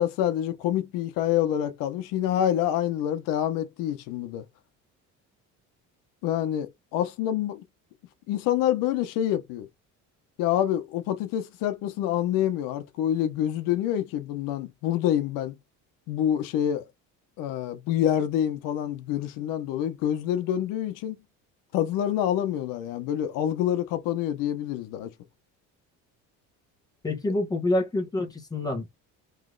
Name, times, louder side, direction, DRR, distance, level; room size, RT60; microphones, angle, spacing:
voice 1, 0.0-4.4 6.2-7.6 8.3-9.7 10.4-15.6 16.1-16.8 17.4-21.2 21.7-25.1, left 11 dB, 85° left, 0.9 m, -27 dB
voice 2, 27.0-28.9, left 2 dB, 10° left, 1.2 m, -27 dB
3.3 x 3.0 x 3.8 m
cardioid pair, 145°, 32 cm